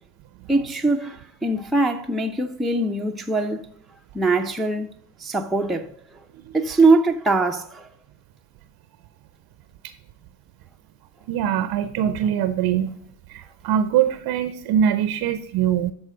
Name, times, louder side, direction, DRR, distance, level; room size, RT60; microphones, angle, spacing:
voice 1, 0.5-3.6 4.1-4.9 5.2-5.8 6.5-7.9, right 3 dB, ahead, 0.6 m, -22 dB
voice 2, 11.3-12.9 13.3-15.9, right 9 dB, 55° right, 0.7 m, -22 dB
12.5 x 4.3 x 3.8 m
hypercardioid pair, 65°, 42 cm